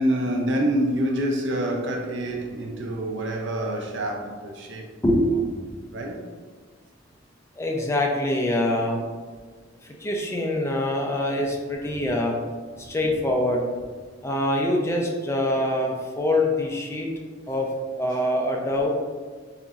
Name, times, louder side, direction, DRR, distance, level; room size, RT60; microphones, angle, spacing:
voice 1, 0.0-4.9 5.9-6.2, right 1 dB, 65° right, 0.6 m, -26 dB
voice 2, 5.0-5.3 5.6-5.7 7.6-9.0 9.8-12.4 12.8-13.7 14.2-17.1 17.5-18.9, left 1 dB, 15° left, 0.5 m, -24 dB
6.8 x 2.6 x 2.4 m
head